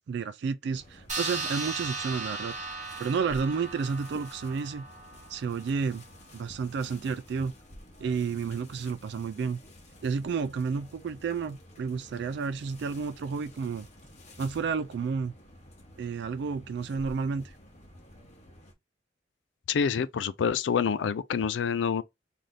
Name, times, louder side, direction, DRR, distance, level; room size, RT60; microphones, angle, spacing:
voice 1, 0.1-4.9 5.3-6.0 6.3-7.5 8.0-9.6 10.0-13.9 14.4-15.3 16.0-17.5, right 5 dB, 65° right, 0.3 m, -31 dB
sound 1, 0.7-18.7, left 1 dB, 40° left, 1.0 m, -51 dB
sound 2, 1.1-6.0, right 3 dB, 45° right, 1.2 m, -37 dB
voice 2, 19.7-22.0, left 6 dB, 80° left, 0.4 m, -27 dB
3.2 x 2.7 x 3.7 m
head